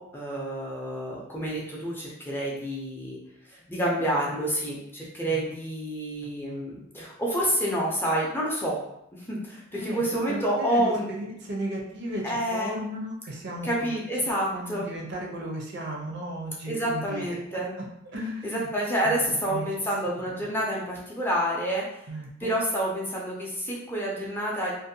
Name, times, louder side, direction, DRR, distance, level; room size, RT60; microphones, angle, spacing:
voice 1, 0.0-3.2 3.7-8.8 9.1-11.1 12.2-12.7 13.6-14.9 16.7-17.7 18.4-21.8 22.4-24.7, right 1 dB, 10° left, -4 dB, 0.4 m, -28 dB
voice 2, 9.7-17.6 18.1-18.7 19.0-19.7 22.1-22.6, right 1 dB, 60° right, -1 dB, 0.6 m, -36 dB
2.5 x 2.1 x 2.7 m, 0.81 s
head